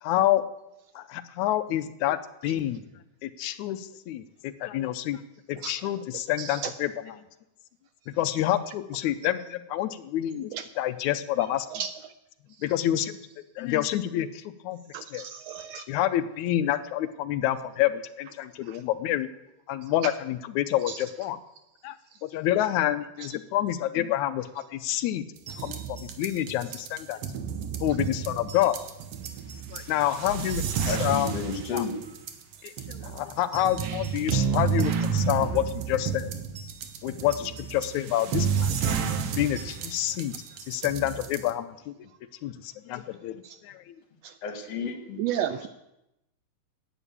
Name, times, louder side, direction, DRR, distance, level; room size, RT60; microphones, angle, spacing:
voice 1, 0.0-0.4 1.0-2.9 3.2-5.2 5.5-7.2 8.2-11.7 12.6-13.2 13.6-14.8 15.1-15.3 15.9-19.3 19.7-21.4 21.8-22.0 22.2-25.3 25.6-27.2 27.8-28.8 29.7-31.3 31.7-31.9 32.6-36.3 37.0-38.8 39.3-40.4 40.7-42.1 42.4-44.0, left 13 dB, 85° left, 12 dB, 2.0 m, -28 dB
voice 2, 6.4-6.7 10.5-10.6 11.7-11.9 14.9-15.8 18.7-18.8 20.9-21.0 43.4-43.5 44.2-44.3 45.2-45.7, right 9 dB, 80° right, 11 dB, 1.5 m, -32 dB
sound 1, 25.4-41.5, right 7 dB, 65° right, 1.9 m, -31 dB
voice 3, 30.9-32.1 44.4-45.6, left 5 dB, 60° left, 6 dB, 2.4 m, -33 dB
11.0 x 9.1 x 8.7 m, 0.89 s
omnidirectional pair, 3.4 m